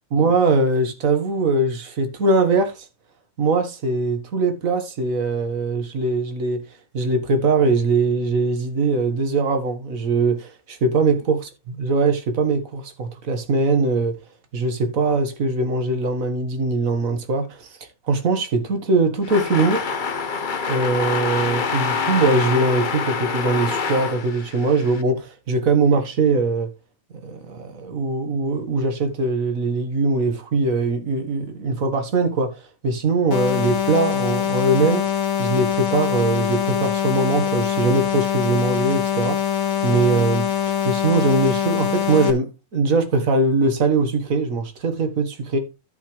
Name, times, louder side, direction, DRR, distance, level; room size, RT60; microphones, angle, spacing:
voice 1, 0.1-2.9 3.4-6.6 6.9-11.4 11.8-14.1 14.5-17.7 18.1-19.9 20.7-26.7 27.2-35.1 35.4-39.4 39.8-40.5 40.8-45.6, right 3 dB, 70° right, 1.9 m, -21 dB
sound 1, 19.2-25.0, left 5 dB, 40° left, 0.9 m, -26 dB
sound 2, 33.3-42.3, left 9 dB, 75° left, 1.8 m, -23 dB
13.0 x 6.0 x 3.2 m
omnidirectional pair, 1.5 m